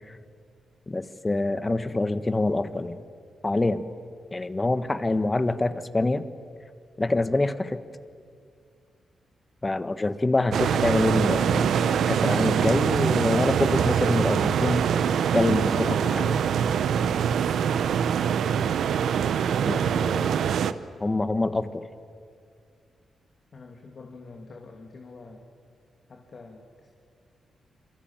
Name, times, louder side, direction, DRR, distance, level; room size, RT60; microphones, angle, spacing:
voice 1, 0.9-3.0 3.4-3.8 4.3-6.2 7.0-7.8 9.6-14.8 15.3-16.4 19.6-20.5 21.0-21.8, left 2 dB, 25° left, 12 dB, 1.3 m, -26 dB
sound 1, 10.5-20.7, right 8 dB, 80° right, 0.9 m, -24 dB
voice 2, 23.5-25.4 26.1-26.9, left 3 dB, 55° left, 2 dB, 2.8 m, -46 dB
27.0 x 23.5 x 9.0 m, 2.2 s
cardioid pair, 85°, 0 cm